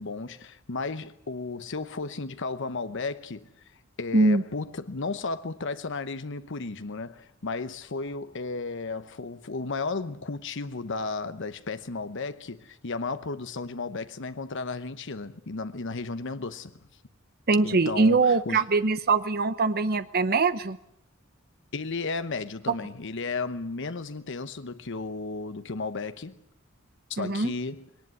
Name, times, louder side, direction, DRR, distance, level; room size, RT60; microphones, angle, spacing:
voice 1, 0.0-3.5 4.0-16.8 17.6-18.6 21.7-26.4 27.1-27.9, left 3 dB, 65° left, 0.9 m, -34 dB
voice 2, 17.5-20.8 27.2-27.5, right 3 dB, 50° right, 0.9 m, -22 dB
21.0 x 18.5 x 9.6 m
head